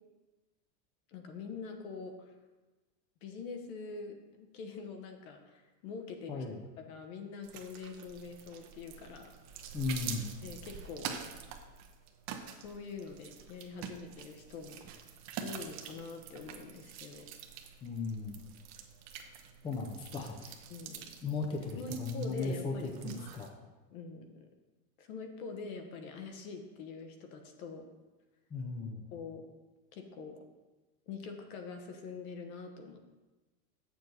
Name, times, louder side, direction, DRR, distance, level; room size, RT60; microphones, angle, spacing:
voice 1, 1.1-2.3 3.2-6.4 6.8-9.3 10.4-11.1 12.5-14.8 15.4-17.3 20.7-21.1 21.7-23.2 23.9-24.5 25.0-27.9 29.1-29.4 29.9-30.4 31.1-33.0, left 4 dB, 65° left, 4 dB, 1.3 m, -44 dB
sound 1, 7.4-23.5, right 8 dB, 35° right, 0.8 m, -46 dB
voice 2, 9.7-10.3 17.8-18.4 19.6-20.5 21.2-23.5 28.5-29.0, left 4 dB, 10° left, 2 dB, 0.5 m, -36 dB
7.6 x 6.8 x 4.0 m, 1.2 s
supercardioid pair, 140°, 45 cm